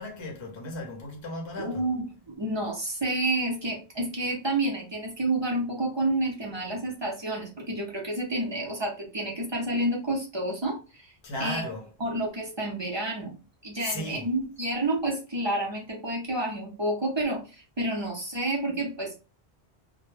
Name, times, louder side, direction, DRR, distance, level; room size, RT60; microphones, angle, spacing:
voice 1, 0.0-1.8 11.2-11.9 13.8-14.3, left 1 dB, 30° left, 0.6 m, -35 dB
voice 2, 1.6-2.1 2.3-11.1 11.4-11.7 12.0-19.1, right 1 dB, 30° right, 0.6 m, -29 dB
2.2 x 2.1 x 3.2 m
omnidirectional pair, 1.1 m